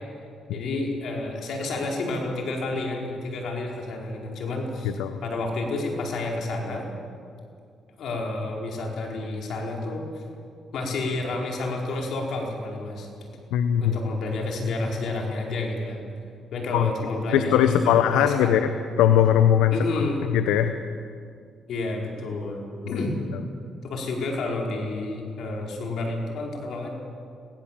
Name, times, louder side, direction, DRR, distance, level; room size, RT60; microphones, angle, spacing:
voice 1, 0.5-4.9 5.2-6.9 8.0-10.2 10.7-13.3 13.8-16.0 16.5-18.6 19.7-20.3 21.7-23.2 23.8-26.9, left 2 dB, 70° left, 0 dB, 4.7 m, -30 dB
voice 2, 13.5-14.0 16.7-16.9 17.3-18.7 19.0-20.0 20.3-20.8 22.9-23.0, left 10 dB, 90° left, 9 dB, 0.9 m, -20 dB
22.5 x 17.5 x 7.5 m, 2.3 s
cardioid pair, 75°, 0 cm